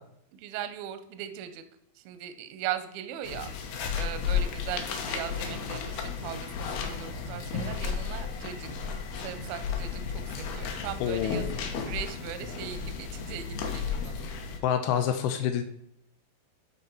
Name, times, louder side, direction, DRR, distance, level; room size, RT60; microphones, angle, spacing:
voice 1, 0.3-1.6 2.0-8.7 9.2-14.3, right 11 dB, 80° right, 9 dB, 2.2 m, -39 dB
sound 1, 3.2-14.6, left 6 dB, 70° left, 2.7 m, -33 dB
voice 2, 11.0-11.6 14.6-15.6, left 9 dB, 90° left, 7 dB, 2.2 m, -27 dB
12.0 x 4.1 x 4.4 m, 0.76 s
omnidirectional pair, 5.2 m